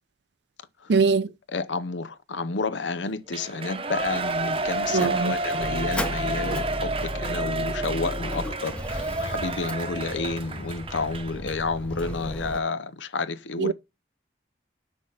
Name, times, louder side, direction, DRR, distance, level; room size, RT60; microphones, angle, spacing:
voice 1, 0.9-1.3 4.9-5.3 13.6-13.7, right 4 dB, 70° right, 0.5 m, -21 dB
voice 2, 1.5-13.7, left 3 dB, 80° left, 0.7 m, -30 dB
Shout / Cheering, 3.3-11.6 12.0-12.1, right 2 dB, 30° right, 0.8 m, -30 dB
Motor vehicle (road), 4.3-12.6, left 1 dB, 5° left, 0.7 m, -38 dB
sound 1, 5.6-10.7, left 1 dB, 20° left, 1.3 m, -35 dB
6.1 x 5.5 x 6.4 m
head